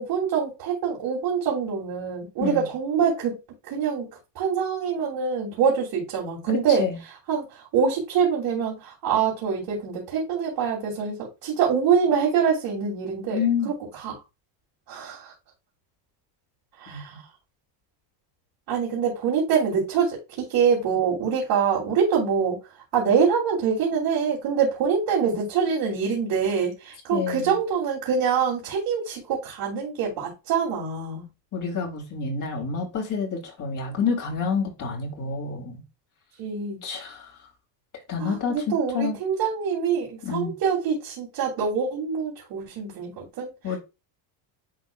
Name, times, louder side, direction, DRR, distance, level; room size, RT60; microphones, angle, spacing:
voice 1, 0.0-3.4 3.7-4.1 4.3-6.9 7.3-13.4 13.6-14.2 14.9-15.3 16.8-17.1 18.7-22.6 22.9-31.3 36.4-36.8 38.2-43.5, right 6 dB, 55° right, 2.9 m, -25 dB
voice 2, 6.5-7.0 13.3-13.7 16.9-17.2 27.1-27.6 31.5-35.8 36.8-37.3 38.1-39.2 40.2-40.5 43.6-43.8, left 5 dB, 40° left, 3.1 m, -28 dB
10.5 x 3.7 x 2.4 m
cardioid pair, 135°, 49 cm